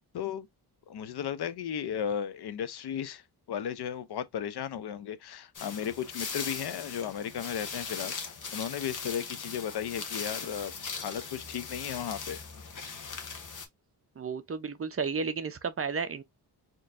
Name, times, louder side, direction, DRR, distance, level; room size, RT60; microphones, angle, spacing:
voice 1, 0.1-0.5 0.9-3.2 3.5-12.4, left 9 dB, 70° left, 0.7 m, -35 dB
sound 1, 5.6-13.7, left 5 dB, 50° left, 1.2 m, -39 dB
voice 2, 14.2-16.2, right 5 dB, 35° right, 0.6 m, -32 dB
4.3 x 3.1 x 2.5 m
wide cardioid pair, 125°, 40 cm